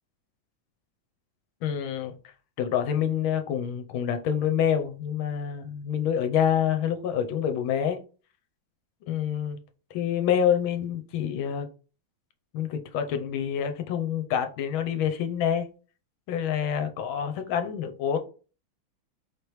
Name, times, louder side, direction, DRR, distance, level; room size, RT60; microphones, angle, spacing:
voice 1, 1.6-2.2 2.6-8.0 9.1-9.6 9.9-11.7 12.5-15.7 16.3-18.2, left 9 dB, 80° left, 1.5 m, -27 dB
4.7 x 3.4 x 3.0 m
omnidirectional pair, 2.2 m